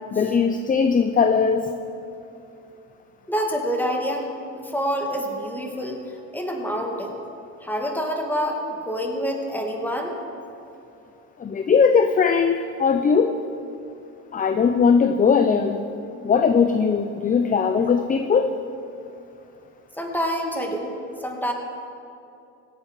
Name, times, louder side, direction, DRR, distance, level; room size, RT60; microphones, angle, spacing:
voice 1, 0.1-1.7 11.4-13.4 14.3-15.8 16.2-18.6, left 5 dB, 20° left, 7 dB, 0.6 m, -19 dB
voice 2, 3.3-6.0 6.3-7.2 7.6-10.2 20.0-20.9 21.2-21.5, equal, 5° left, 1 dB, 2.2 m, -27 dB
16.5 x 8.4 x 5.4 m, 2.7 s
supercardioid pair, 85°, 38 cm